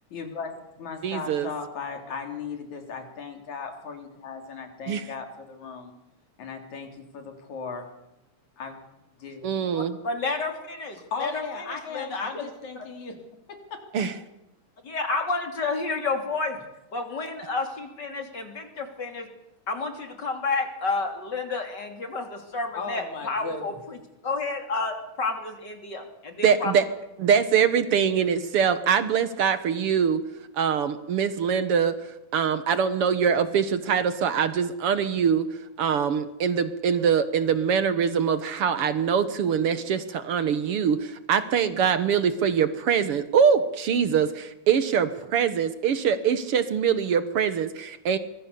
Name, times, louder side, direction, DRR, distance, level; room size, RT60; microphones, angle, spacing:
voice 1, 0.1-5.9 6.4-7.9 8.6-8.8 9.2-9.5 11.1-13.2 13.5-13.8 22.7-23.6, left 5 dB, 65° left, 4 dB, 4.6 m, -37 dB
voice 2, 1.0-1.5 4.9-5.0 9.4-10.0 13.9-14.1 26.4-26.8 27.2-30.2 30.6-32.0 32.3-35.5 35.8-48.2, right 7 dB, 60° right, 12 dB, 1.7 m, -23 dB
voice 3, 9.7-11.4 11.7-12.5 14.8-16.6 16.9-19.3 19.7-24.0 24.2-26.7, left 3 dB, 35° left, 5 dB, 3.5 m, -30 dB
25.0 x 22.0 x 6.9 m, 0.90 s
omnidirectional pair, 3.7 m